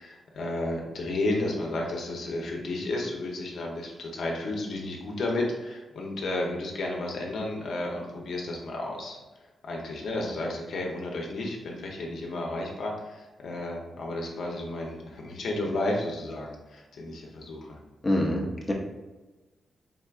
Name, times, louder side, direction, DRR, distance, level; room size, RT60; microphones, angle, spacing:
voice 1, 0.0-9.2 9.6-17.8, left 2 dB, 70° left, 0 dB, 0.7 m, -32 dB
voice 2, 18.0-18.7, left 1 dB, 20° left, -1 dB, 0.6 m, -26 dB
3.6 x 3.4 x 2.4 m, 1.1 s
cardioid pair, 100°, 0 cm